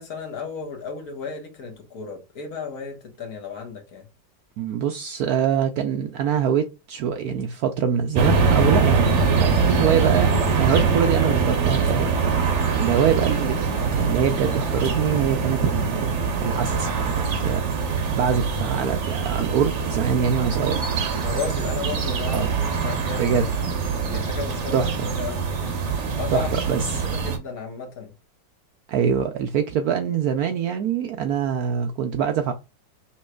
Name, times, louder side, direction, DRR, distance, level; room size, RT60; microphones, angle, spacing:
voice 1, 0.0-4.0 21.2-23.5 24.1-25.4 26.2-26.5 26.8-28.1, left 5 dB, 55° left, 1.5 m, -34 dB
voice 2, 4.6-10.3 10.6-12.1 12.8-17.1 17.4-17.6 18.1-20.8 22.3-22.6 23.1-23.7 24.7-25.1 26.3-27.1 28.9-32.5, right 8 dB, 70° right, 0.9 m, -24 dB
sound 1, 8.2-27.4, right 5 dB, 50° right, 1.0 m, -23 dB
5.5 x 3.1 x 2.2 m
omnidirectional pair, 2.0 m